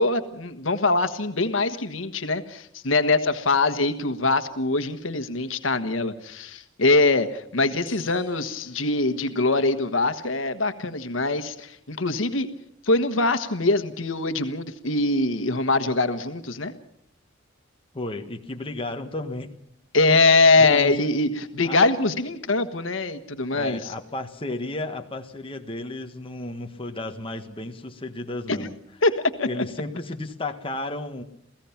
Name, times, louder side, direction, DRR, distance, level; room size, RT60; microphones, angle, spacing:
voice 1, 0.0-12.5 12.8-16.7 19.9-23.9 28.5-28.7 29.0-29.6, left 3 dB, 85° left, 10 dB, 1.4 m, -23 dB
sound 1, 7.9-9.9, left 3 dB, 10° left, 5.7 m, -50 dB
voice 2, 17.9-19.5 20.6-20.9 21.6-21.8 23.5-28.7 29.4-31.2, left 2 dB, 30° left, 5 dB, 1.4 m, -33 dB
28.5 x 16.5 x 5.9 m, 0.70 s
head